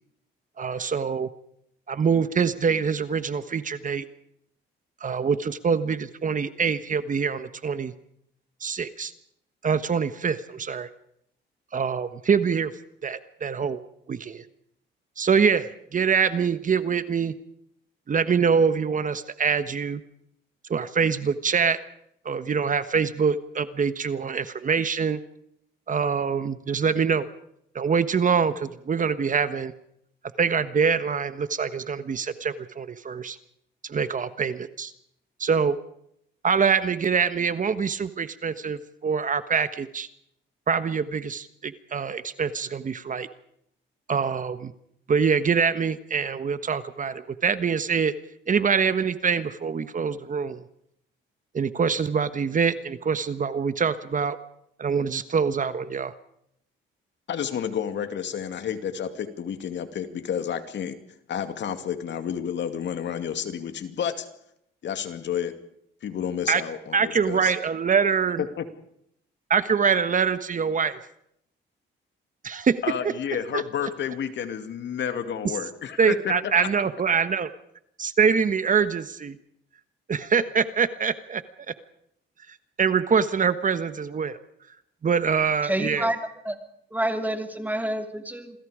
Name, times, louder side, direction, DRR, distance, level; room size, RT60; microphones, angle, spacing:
voice 1, 0.6-1.3 1.9-4.1 5.0-7.9 8.6-9.1 9.6-10.9 11.7-12.7 13.0-13.8 14.1-14.4 15.2-17.3 18.1-20.0 20.7-21.8 22.2-25.2 25.9-27.3 27.7-29.7 30.4-33.4 33.8-34.9 35.4-35.8 36.4-40.1 40.7-43.3 44.1-44.7 45.1-48.1 48.5-50.6 51.5-54.4 54.8-56.1 66.5-66.6 66.9-68.4 69.5-71.0 72.4-72.8 73.5-73.6 76.0-77.5 78.0-79.4 80.1-81.4 81.7-81.8 82.8-84.4 85.0-86.1, right 6 dB, 40° right, 12 dB, 1.3 m, -24 dB
voice 2, 57.3-61.0 61.3-64.3 64.8-65.6 66.0-67.5 68.4-68.7 72.8-76.5, left 8 dB, 65° left, 9 dB, 2.4 m, -30 dB
voice 3, 85.6-86.2 86.4-86.6 86.9-88.5, right 1 dB, 10° right, 6 dB, 3.0 m, -28 dB
28.0 x 21.5 x 5.1 m, 0.73 s
cardioid pair, 90°, 20 cm